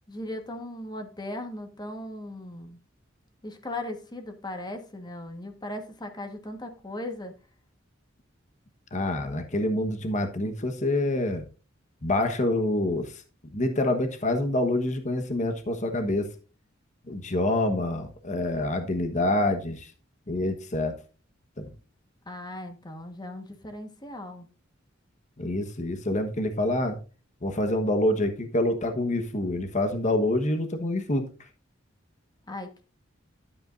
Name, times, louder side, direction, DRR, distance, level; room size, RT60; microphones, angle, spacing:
voice 1, 0.1-2.8 3.4-7.3 22.3-24.5 32.5-32.8, left 1 dB, 20° left, 1.4 m, -38 dB
voice 2, 8.9-11.4 12.0-13.2 13.5-16.3 17.1-19.9 20.3-20.9 21.6-21.7 25.4-27.0 27.4-31.3, left 1 dB, 40° left, 1.2 m, -26 dB
12.0 x 8.6 x 2.6 m
head